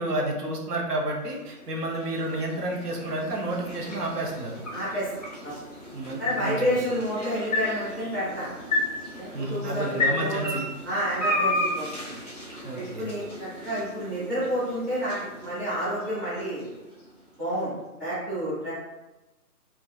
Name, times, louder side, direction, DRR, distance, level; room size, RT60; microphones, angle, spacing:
voice 1, 0.0-4.6 5.9-6.6 9.3-10.7 12.6-13.1, right 1 dB, 80° right, 0 dB, 0.8 m, -30 dB
sound 1, 1.1-17.3, left 2 dB, 25° left, 0.5 m, -34 dB
voice 2, 4.7-5.1 5.4-5.6 6.2-8.5 9.2-10.5 10.8-12.1 12.7-16.6 17.4-17.7 18.0-18.7, equal, 15° right, -13 dB, 0.7 m, -29 dB
2.6 x 2.3 x 2.2 m, 1.0 s
figure-of-eight pair, 150°, 46 cm